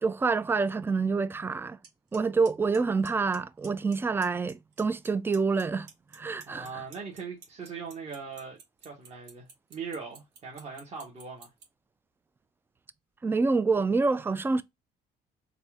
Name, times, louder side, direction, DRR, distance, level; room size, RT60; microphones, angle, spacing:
voice 1, 0.0-1.8 2.1-5.9 6.1-6.8 13.2-14.6, right 4 dB, 15° right, 0.3 m, -27 dB
Clock, 1.8-1.9 2.1-2.5 2.7-3.4 3.6-3.9 4.2-5.1 5.3-11.6, right 5 dB, 80° right, 1.6 m, -48 dB
voice 2, 6.5-11.5, right 5 dB, 40° right, 1.3 m, -40 dB
4.2 x 2.4 x 3.4 m
cardioid pair, 110°, 17 cm